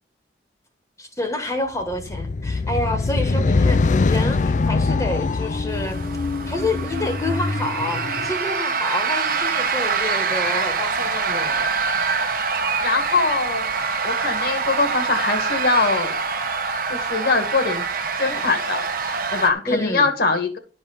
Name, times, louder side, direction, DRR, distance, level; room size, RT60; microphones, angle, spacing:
voice 1, 1.0-6.0 6.5-11.7 19.7-20.1, left 2 dB, 20° left, 1.4 m, -28 dB
sound 1, 1.9-8.4, left 3 dB, 45° left, 0.5 m, -23 dB
sound 2, 5.7-19.5, right 5 dB, 55° right, 1.2 m, -25 dB
voice 2, 12.8-16.1 16.9-17.9 18.2-20.6, left 3 dB, 60° left, 2.0 m, -22 dB
12.0 x 5.3 x 6.8 m
head